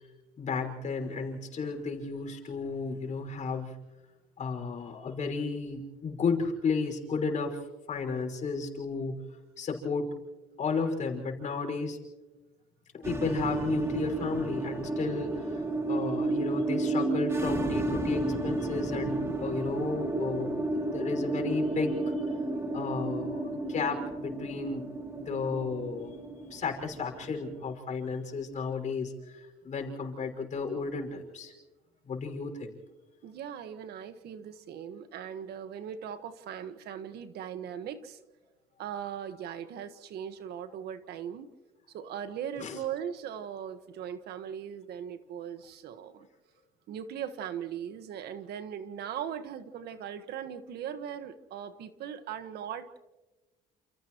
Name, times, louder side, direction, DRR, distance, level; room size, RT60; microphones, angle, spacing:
voice 1, 0.4-3.7 4.4-7.6 7.9-9.2 9.6-10.2 10.6-12.0 12.9-22.0 22.7-24.8 25.2-26.2 26.5-31.5 32.1-32.8 42.6-42.8, left 4 dB, 45° left, 2 dB, 5.7 m, -33 dB
sound 1, 13.0-27.7, right 2 dB, 15° right, 2.0 m, -32 dB
voice 2, 33.2-38.2 38.8-41.5 41.9-46.3 46.9-52.9, right 9 dB, 75° right, 9 dB, 1.6 m, -39 dB
29.5 x 29.0 x 3.1 m, 1.1 s
cardioid pair, 110°, 17 cm